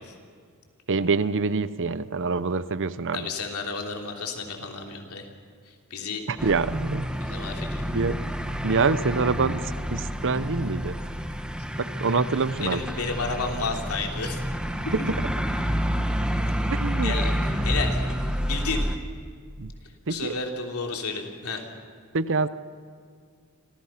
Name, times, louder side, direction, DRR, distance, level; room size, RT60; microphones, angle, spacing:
voice 1, 0.9-3.3 6.3-7.1 7.8-8.2 8.6-11.0 11.8-12.8 14.9-15.1 16.7-17.1 19.6-19.7 20.1-20.3 22.1-22.5, right 4 dB, 60° right, 15 dB, 0.8 m, -26 dB
voice 2, 3.1-5.3 5.7-6.2 7.2-7.8 12.6-14.4 14.8-14.9 17.0-17.3 17.6-18.0 18.5-18.9 20.1-21.6, left 4 dB, 75° left, 2 dB, 3.4 m, -31 dB
sound 1, 6.4-19.0, equal, 5° right, 1.5 m, -29 dB
29.5 x 26.5 x 5.9 m, 2.1 s
head